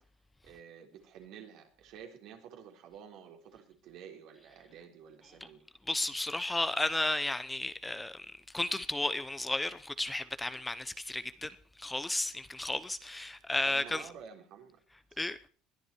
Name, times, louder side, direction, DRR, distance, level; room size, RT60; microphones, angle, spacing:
voice 1, 0.4-5.6 13.7-14.8 15.1-15.2, right 8 dB, 65° right, 3.7 m, -51 dB
voice 2, 5.9-14.0 15.2-15.4, left 2 dB, 10° left, 0.8 m, -33 dB
21.0 x 11.5 x 4.5 m
supercardioid pair, 110°, 0 cm